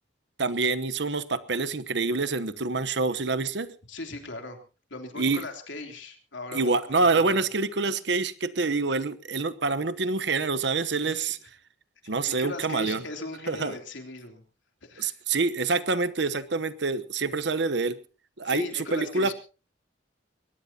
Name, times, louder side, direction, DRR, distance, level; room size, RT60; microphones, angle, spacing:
voice 1, 0.4-3.7 5.2-5.5 6.5-11.4 12.1-13.0 13.5-13.8 15.0-18.0 18.4-19.3, right 3 dB, 70° right, 14 dB, 1.0 m, -26 dB
voice 2, 3.9-4.6 4.9-6.7 7.0-7.4 12.0-14.4 14.8-15.2 18.4-19.3, left 2 dB, 90° left, 4 dB, 3.3 m, -38 dB
22.0 x 18.5 x 2.9 m, 0.34 s
head